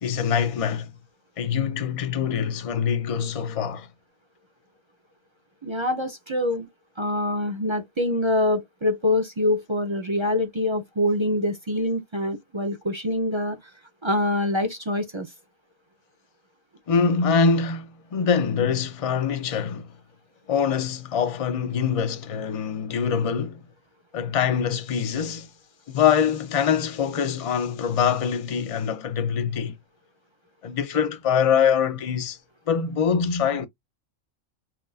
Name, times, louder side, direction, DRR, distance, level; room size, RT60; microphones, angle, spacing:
voice 1, 0.0-0.9 1.4-3.9 16.9-19.9 20.5-23.6 24.1-25.5 25.9-29.8 30.6-32.4 32.7-33.7, left 6 dB, 50° left, 0.4 m, -24 dB
voice 2, 5.6-6.7 7.0-13.6 14.0-15.3, left 1 dB, 30° right, 0.5 m, -25 dB
4.4 x 2.5 x 2.4 m
omnidirectional pair, 1.4 m